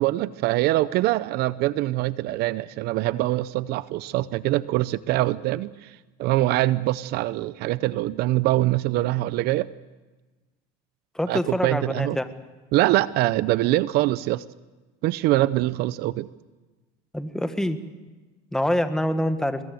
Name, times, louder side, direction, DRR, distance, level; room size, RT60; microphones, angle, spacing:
voice 1, 0.0-5.9 6.2-9.7 11.3-12.2 12.7-14.4 15.0-16.3, right 17 dB, 55° right, 17 dB, 0.7 m, -23 dB
voice 2, 11.1-12.3 17.1-17.8 18.5-19.6, left 1 dB, 5° left, 9 dB, 1.5 m, -25 dB
23.0 x 22.0 x 7.8 m, 1.2 s
supercardioid pair, 125°, 20 cm